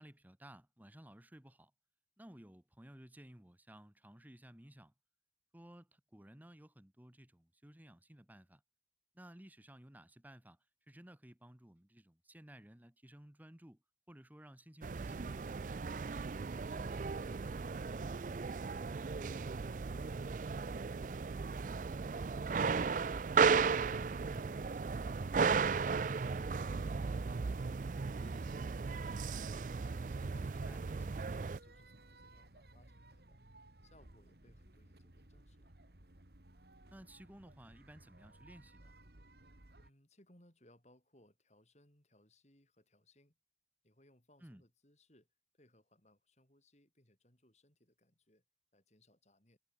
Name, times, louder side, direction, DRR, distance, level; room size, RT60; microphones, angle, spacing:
voice 1, 0.0-1.7 2.2-4.9 5.5-8.6 9.1-10.6 10.9-13.8 14.1-15.4 30.5-30.8 36.9-38.9 44.4-44.6, right 1 dB, 10° right, 1.0 m, -56 dB
sound 1, 14.8-31.6, right 5 dB, 45° right, 0.4 m, -35 dB
voice 2, 16.2-22.6 26.2-29.5 30.1-33.4 33.8-35.8 39.8-43.3 43.8-45.3 45.6-48.4 48.7-49.6, left 1 dB, 40° left, 5.1 m, -68 dB
sound 2, 23.4-39.9, right 1 dB, 60° right, 2.4 m, -57 dB
head